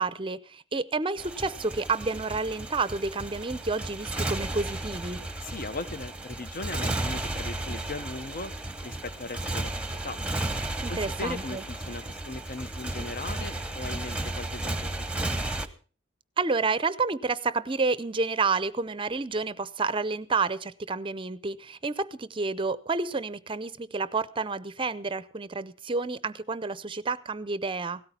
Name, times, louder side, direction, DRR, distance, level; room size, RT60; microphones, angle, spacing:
voice 1, 0.0-5.2 10.8-11.6 16.4-28.0, right 4 dB, 25° right, 0.6 m, -30 dB
Motorcycle, 1.2-15.7, right 2 dB, 5° right, 1.0 m, -34 dB
voice 2, 5.4-8.5 8.8-10.2 10.9-15.3, left 3 dB, 50° left, 0.8 m, -38 dB
17.0 x 13.5 x 4.3 m
head